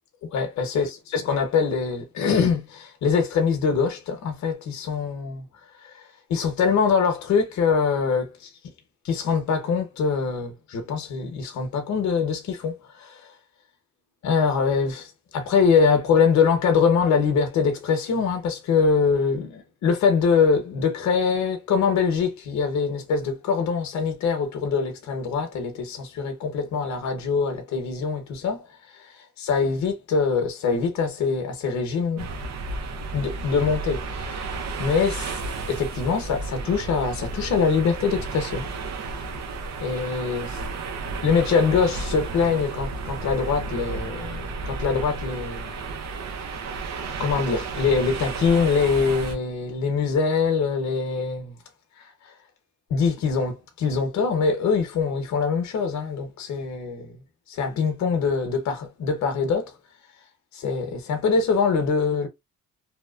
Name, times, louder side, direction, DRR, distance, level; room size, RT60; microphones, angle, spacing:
voice 1, 0.3-5.5 5.8-6.0 6.3-8.5 9.0-13.2 14.2-28.6 29.4-32.3 33.1-34.5 34.8-35.4 35.7-38.6 39.8-40.6 41.2-45.7 47.2-51.6 52.9-57.1 57.5-59.7 60.5-62.3, left 5 dB, 65° left, 0.9 m, -23 dB
sound 1, 32.2-49.3, right 3 dB, 65° right, 0.7 m, -32 dB
2.8 x 2.1 x 2.3 m
cardioid pair, 90°, 30 cm